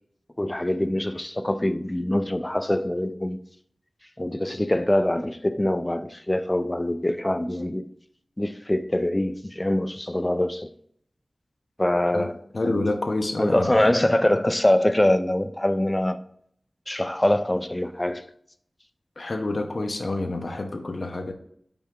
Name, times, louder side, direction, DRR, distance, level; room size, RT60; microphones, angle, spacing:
voice 1, 0.4-3.4 4.2-7.8 8.4-10.7 11.8-12.8 13.4-16.2 16.9-18.2, left 1 dB, 20° left, 0.4 m, -24 dB
voice 2, 12.5-13.9 19.2-21.3, left 2 dB, 65° left, 0.8 m, -28 dB
7.0 x 4.8 x 3.7 m
wide cardioid pair, 60°, 0 cm